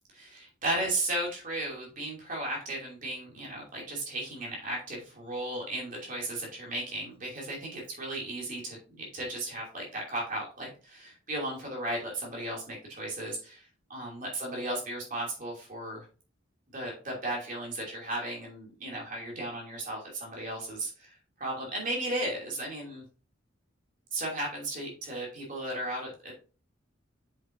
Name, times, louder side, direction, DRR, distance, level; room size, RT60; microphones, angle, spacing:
voice 1, 0.1-13.6 13.9-16.0 16.7-21.1 21.4-23.0 24.1-26.3, right 1 dB, 45° right, -2 dB, 2.8 m, -35 dB
7.2 x 6.0 x 2.7 m, 0.35 s
head